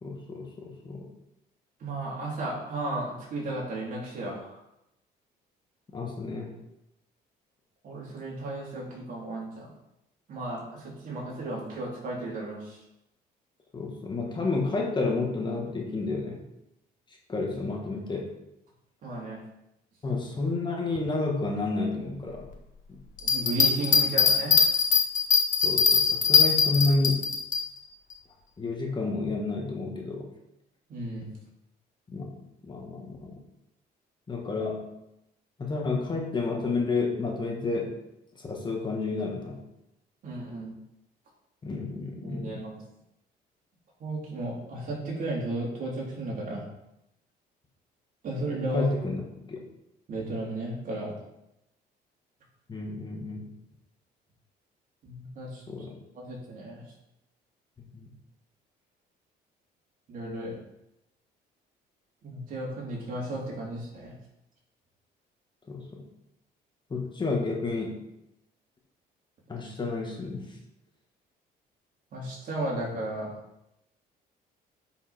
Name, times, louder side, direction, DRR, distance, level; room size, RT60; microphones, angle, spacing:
voice 1, 0.0-1.1 5.9-6.5 13.7-16.4 17.3-18.3 20.0-22.4 22.9-23.0 25.6-27.2 28.6-30.3 32.1-32.4 32.6-33.4 34.3-34.8 35.6-37.9 38.3-39.6 41.6-42.6 48.7-49.6 52.7-53.4 55.7-56.0 57.9-58.1 65.7-66.0 66.9-68.0 69.5-70.5, left 3 dB, 25° left, 0 dB, 1.9 m, -30 dB
voice 2, 1.8-4.6 7.8-9.7 10.3-12.8 19.0-19.4 23.2-24.7 30.9-31.3 40.2-40.7 42.2-42.8 44.0-46.6 48.2-48.9 50.1-51.1 55.0-55.6 56.1-56.8 60.1-60.6 62.2-64.1 72.1-73.3, right 2 dB, 55° right, -3 dB, 3.7 m, -34 dB
sound 1, 23.2-27.6, left 6 dB, 50° left, 1.8 m, -21 dB
10.0 x 5.5 x 4.4 m, 0.86 s
cardioid pair, 110°, 17 cm